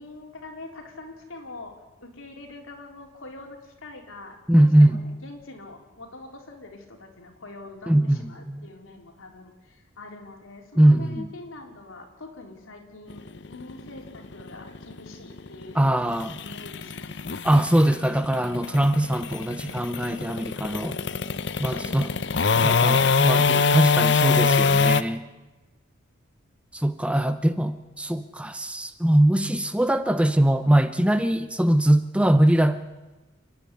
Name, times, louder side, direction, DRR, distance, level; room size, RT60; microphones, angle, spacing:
voice 1, 0.0-17.4 20.9-21.4 21.7-22.4, left 2 dB, 80° left, 2 dB, 3.6 m, -44 dB
voice 2, 4.5-5.0 7.9-8.7 10.8-11.3 15.7-16.4 17.4-21.0 21.6-22.1 22.6-25.2 26.7-32.8, right 1 dB, 5° right, 10 dB, 0.6 m, -21 dB
sound 1, 13.1-25.0, left 5 dB, 60° left, 0.7 m, -23 dB
29.0 x 10.5 x 9.8 m, 1.1 s
head